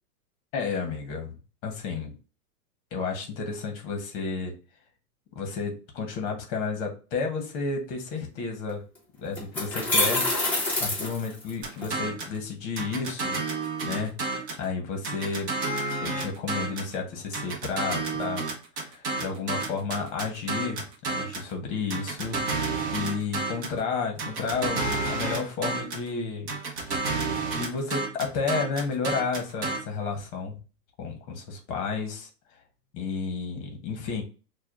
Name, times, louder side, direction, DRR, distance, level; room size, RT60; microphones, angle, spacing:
voice 1, 0.5-1.4 1.6-2.1 2.9-4.6 5.3-8.8 9.2-10.3 10.8-13.4 13.8-14.1 14.6-15.5 16.0-18.5 18.8-22.6 22.9-26.5 26.8-27.1 27.5-30.6 31.0-32.3 32.9-34.2, left 4 dB, 30° left, 3 dB, 0.9 m, -32 dB
sound 1, 8.7-8.8 9.4-11.9, left 2 dB, 5° left, 0.6 m, -26 dB
sound 2, 11.6-12.4 12.8-14.7 15.0-16.9 17.3-21.5 21.9-23.8 24.2-26.1 26.5-29.8, right 3 dB, 30° right, 0.8 m, -30 dB
6.3 x 2.3 x 2.4 m, 0.33 s
supercardioid pair, 155°, 46 cm